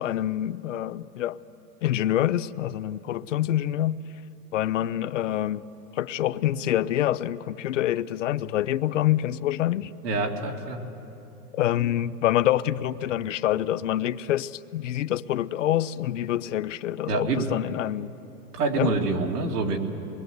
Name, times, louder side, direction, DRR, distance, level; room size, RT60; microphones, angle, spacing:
voice 1, 0.0-1.4 1.8-4.0 4.5-5.6 6.0-9.9 11.5-18.1 18.8-18.9, left 12 dB, 50° left, 15 dB, 0.6 m, -26 dB
voice 2, 10.0-10.9 17.1-17.5 18.5-19.8, right 3 dB, 70° right, 2 dB, 2.9 m, -26 dB
26.5 x 21.0 x 8.0 m, 2.9 s
hypercardioid pair, 170°, 48 cm